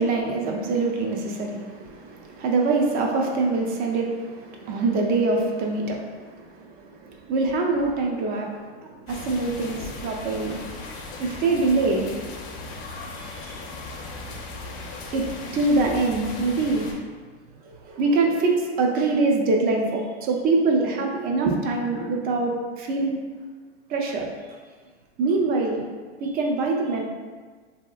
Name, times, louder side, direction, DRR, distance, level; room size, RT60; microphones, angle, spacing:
voice 1, 0.0-10.6 11.2-12.1 13.1-13.6 15.1-16.9 17.6-23.2 23.9-24.3 25.2-25.9 26.2-27.0, right 3 dB, 30° right, 1 dB, 0.4 m, -24 dB
sound 1, 9.1-16.9, left 3 dB, 40° left, 0.6 m, -37 dB
3.0 x 2.8 x 2.3 m, 1.5 s
hypercardioid pair, 115°, 32 cm